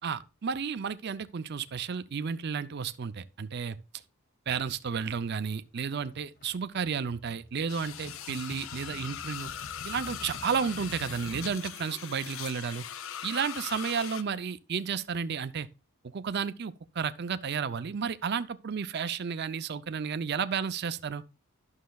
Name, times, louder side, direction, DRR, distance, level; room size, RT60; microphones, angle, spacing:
voice 1, 0.0-3.8 4.5-9.5 9.8-12.8 13.2-15.7 16.0-21.2, right 6 dB, 50° right, 0.4 m, -32 dB
sound 1, 6.0-11.6, left 2 dB, 40° left, 1.0 m, -47 dB
sound 2, 7.7-14.2, left 9 dB, 65° left, 0.5 m, -40 dB
11.5 x 6.4 x 2.3 m
head